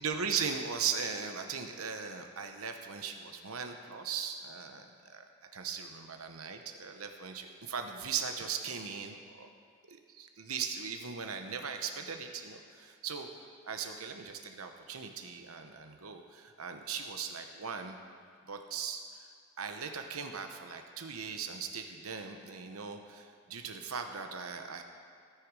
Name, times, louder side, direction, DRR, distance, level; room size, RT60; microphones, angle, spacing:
voice 1, 0.0-5.2 5.5-9.5 9.9-13.3 13.6-18.0 18.5-19.3 19.6-24.8, right 6 dB, 90° right, 5 dB, 1.0 m, -39 dB
17.5 x 6.6 x 4.8 m, 2.2 s
head